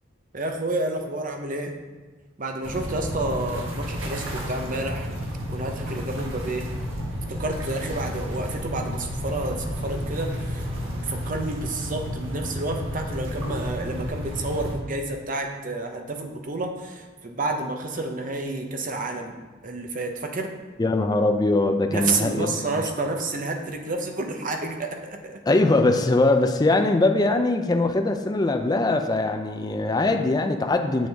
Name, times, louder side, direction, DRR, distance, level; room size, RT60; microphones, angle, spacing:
voice 1, 0.3-1.7 2.4-5.1 5.5-6.7 7.3-19.4 19.6-20.5 21.9-25.4, right 2 dB, 45° right, 3 dB, 0.8 m, -30 dB
sound 1, 2.6-14.7, equal, 80° right, 1.5 m, -31 dB
voice 2, 20.8-22.5 25.5-31.1, left 2 dB, 20° left, 5 dB, 0.5 m, -21 dB
7.6 x 6.3 x 3.5 m, 1.3 s
head